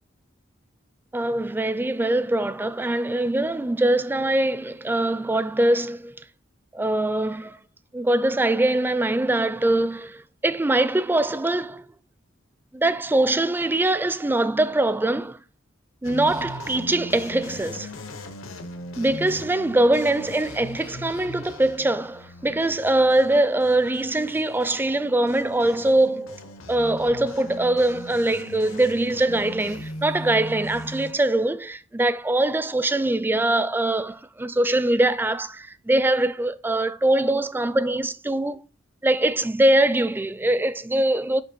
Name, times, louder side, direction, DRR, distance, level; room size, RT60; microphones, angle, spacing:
voice 1, 1.1-6.1 6.7-7.6 7.9-11.9 12.7-15.4 16.0-17.9 19.0-26.4 26.7-38.6 39.0-41.4, right 1 dB, 10° right, 0.4 m, -22 dB
sound 1, 16.0-31.1, left 1 dB, 80° left, 1.0 m, -39 dB
8.0 x 2.9 x 5.3 m
head